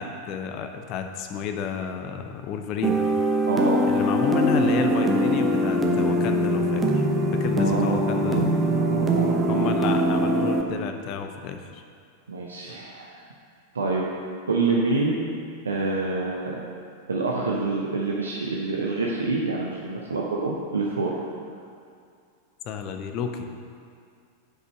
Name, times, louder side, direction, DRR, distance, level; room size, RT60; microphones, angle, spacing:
voice 1, 0.0-3.0 3.9-7.1 7.3-8.5 9.5-11.8 22.6-23.5, left 7 dB, 40° left, 6 dB, 0.6 m, -30 dB
sound 1, 2.8-10.6, right 1 dB, 15° right, 0.8 m, -22 dB
voice 2, 3.5-3.8 7.6-9.7 10.1-10.2 12.3-13.2 13.7-14.0 14.5-15.2 15.6-16.6 17.1-21.1, right 3 dB, 75° right, -3 dB, 0.8 m, -27 dB
6.3 x 5.2 x 6.2 m, 2.3 s
figure-of-eight pair, 90°, 0 cm